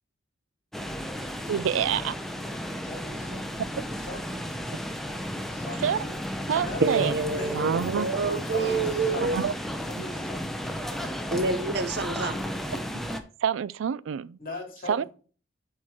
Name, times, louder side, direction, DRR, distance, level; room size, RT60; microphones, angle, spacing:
sound 1, 0.7-13.2, equal, ahead, 0.7 m, -34 dB
voice 1, 1.5-2.1 5.8-6.0 6.5-7.1 7.5-8.1 9.2-9.5 13.4-14.4 14.9-15.0, right 8 dB, 85° right, 0.4 m, -27 dB
voice 2, 2.8-3.6 3.9-4.4 5.5-6.1 6.6-7.8 8.2-9.4 9.8-10.6 14.4-15.1, left 2 dB, 45° left, 2.7 m, -39 dB
voice 3, 6.8-9.5 11.3-12.4, right 3 dB, 55° right, 0.8 m, -27 dB
8.4 x 4.8 x 4.3 m
head